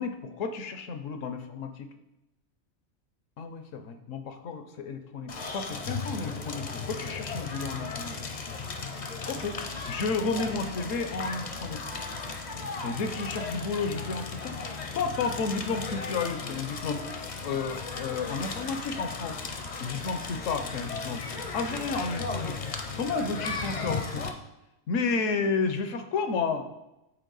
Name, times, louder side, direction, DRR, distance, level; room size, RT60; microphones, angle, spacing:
voice 1, 0.0-1.9 3.4-8.3 9.3-9.6 9.9-11.8 12.8-14.6 14.9-17.0 17.4-19.4 19.8-21.2 21.5-22.6 22.9-24.3 24.9-26.6, left 4 dB, 70° left, 8 dB, 1.0 m, -32 dB
Crackle, 5.3-24.3, left 4 dB, 45° left, 0.6 m, -36 dB
8.1 x 4.2 x 3.9 m, 0.92 s
omnidirectional pair, 1.4 m